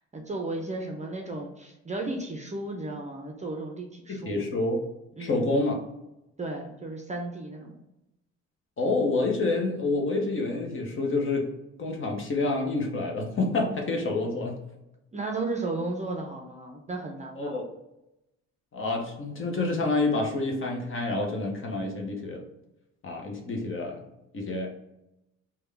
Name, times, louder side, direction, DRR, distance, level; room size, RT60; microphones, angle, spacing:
voice 1, 0.0-4.4 5.2-5.5 6.4-7.8 15.1-17.6, right 2 dB, 25° right, 2 dB, 0.6 m, -34 dB
voice 2, 4.1-4.8 5.2-5.8 8.8-11.5 11.8-14.6 17.3-17.6 18.7-22.4 23.0-24.0 24.3-24.7, left 2 dB, 45° left, 0 dB, 0.9 m, -28 dB
3.4 x 2.3 x 3.3 m, 0.90 s
cardioid pair, 90°, 30 cm